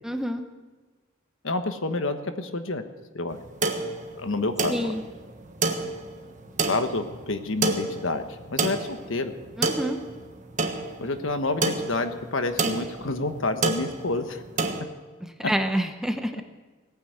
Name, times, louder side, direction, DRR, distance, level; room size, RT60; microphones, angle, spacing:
voice 1, 0.0-0.4 4.7-5.0 9.6-10.0 15.2-16.4, equal, ahead, 6 dB, 0.8 m, -28 dB
voice 2, 1.4-2.8 3.1-3.4 4.2-4.9 6.6-9.3 11.0-14.4, left 2 dB, 70° left, 8 dB, 1.3 m, -28 dB
sound 1, 3.3-14.8, right 3 dB, 35° right, 1.4 m, -30 dB
18.0 x 9.7 x 8.0 m, 1.4 s
head